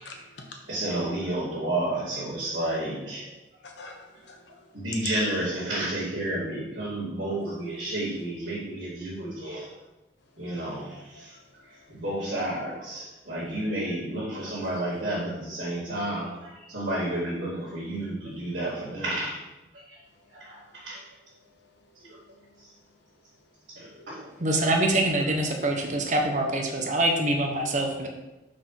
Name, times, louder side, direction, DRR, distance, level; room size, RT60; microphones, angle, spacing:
voice 1, 0.0-0.6 3.6-4.7 10.5-11.9 14.4-15.0 22.1-22.5, left 3 dB, 65° left, 1 dB, 1.1 m, -49 dB
voice 2, 0.7-3.3 4.7-9.7 10.4-11.4 11.9-19.4 19.7-20.0 20.3-21.0 21.9-22.1 22.6-22.7 23.7-24.3 25.2-25.3, right 1 dB, 60° right, -13 dB, 2.8 m, -31 dB
voice 3, 24.4-28.1, right 1 dB, 40° right, 2 dB, 1.1 m, -25 dB
6.1 x 5.2 x 5.9 m, 1.0 s
head